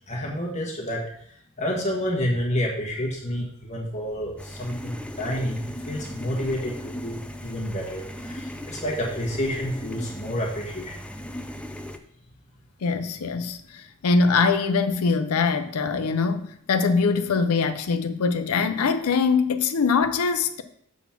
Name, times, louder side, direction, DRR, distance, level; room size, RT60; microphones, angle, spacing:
voice 1, 0.1-1.0 1.6-11.1, equal, 35° left, 1.5 m, -29 dB
sound 1, 4.4-12.0, equal, 5° left, 0.4 m, -37 dB
voice 2, 12.8-13.6 14.0-20.6, left 4 dB, 85° left, 0.5 m, -22 dB
7.0 x 4.2 x 5.8 m
head